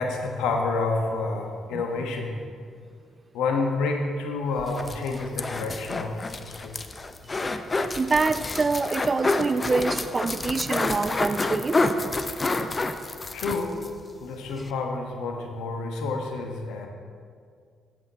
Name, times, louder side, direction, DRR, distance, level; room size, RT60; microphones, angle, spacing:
voice 1, 0.0-2.4 3.3-6.8 13.3-13.8 14.2-16.9, left 3 dB, 70° left, 3 dB, 1.2 m, -29 dB
sound 1, 4.6-13.9 14.2-14.3 14.6-14.7, left 2 dB, 35° left, 0.7 m, -28 dB
voice 2, 8.0-11.8, right 4 dB, 35° right, 14 dB, 0.4 m, -25 dB
11.5 x 8.2 x 4.2 m, 2.1 s
hypercardioid pair, 45°, 0 cm